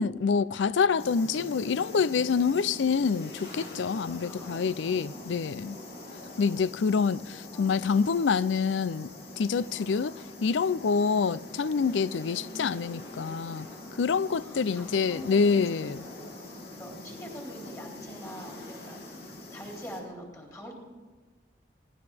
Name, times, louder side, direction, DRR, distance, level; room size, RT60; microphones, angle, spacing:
voice 1, 0.0-5.8 6.4-9.1 9.4-10.1 10.4-13.7 14.0-16.1, left 5 dB, 85° left, 0.4 m, -26 dB
sound 1, 1.0-20.0, left 2 dB, 65° left, 2.6 m, -44 dB
voice 2, 7.5-7.8 9.4-9.7 14.3-15.6 16.1-20.8, equal, 20° left, 3.3 m, -45 dB
22.5 x 17.5 x 3.5 m
head